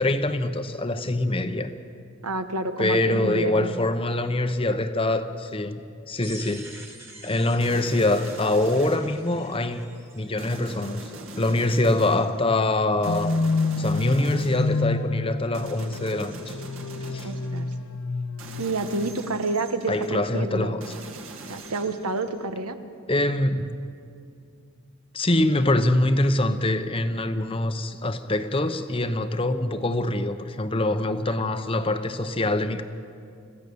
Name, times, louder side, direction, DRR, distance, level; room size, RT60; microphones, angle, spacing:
voice 1, 0.0-1.7 2.8-5.8 6.1-6.7 7.2-9.9 10.2-11.0 11.4-13.3 13.8-16.6 17.1-17.3 19.9-20.9 23.1-23.7 25.1-32.8, left 2 dB, 25° left, 0.8 m, -24 dB
voice 2, 2.2-3.8 17.2-17.7 18.6-20.8 21.5-22.8, right 2 dB, 85° right, 1.2 m, -29 dB
sound 1, 6.2-11.1, right 1 dB, 10° right, 1.6 m, -46 dB
sound 2, 7.6-9.6 10.4-12.4 13.0-14.9 15.5-17.8 18.4-20.1 20.8-22.5, right 2 dB, 60° right, 2.0 m, -42 dB
sound 3, 13.1-19.3, left 3 dB, 90° left, 0.8 m, -29 dB
26.5 x 15.5 x 6.9 m
head